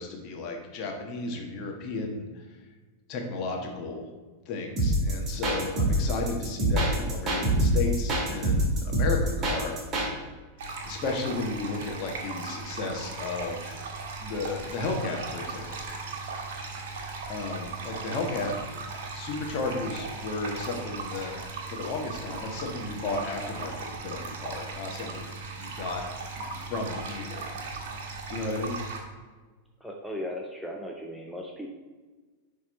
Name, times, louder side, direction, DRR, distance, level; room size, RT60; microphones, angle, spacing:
voice 1, 0.0-2.6 3.1-4.1 4.4-9.8 10.8-13.8 14.2-15.7 17.3-21.3 21.7-26.0 26.7-27.5 28.3-28.8, left 3 dB, 40° left, 1 dB, 1.4 m, -34 dB
sound 1, 4.8-10.1, right 1 dB, 25° right, 2.1 m, -25 dB
sound 2, 10.6-29.0, right 4 dB, 50° right, 1.3 m, -37 dB
voice 2, 29.8-31.7, left 1 dB, ahead, 0 dB, 0.7 m, -37 dB
10.5 x 3.7 x 4.2 m, 1.3 s
figure-of-eight pair, 90°, 0 cm